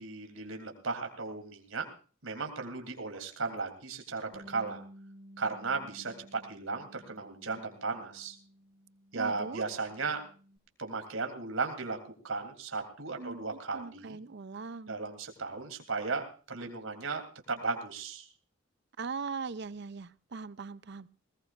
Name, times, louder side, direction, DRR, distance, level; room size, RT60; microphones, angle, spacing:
voice 1, 0.0-1.8 2.2-4.8 5.4-8.4 9.1-10.2 10.8-12.0 12.2-14.2 14.9-17.2 17.5-18.3, right 4 dB, 80° right, 5 dB, 3.2 m, -36 dB
Bass guitar, 4.3-10.6, equal, 35° right, 4.5 m, -54 dB
voice 2, 9.1-9.6 13.2-13.4 13.7-15.1 19.0-21.1, right 4 dB, 55° right, 16 dB, 0.6 m, -40 dB
20.0 x 19.5 x 2.5 m, 0.38 s
head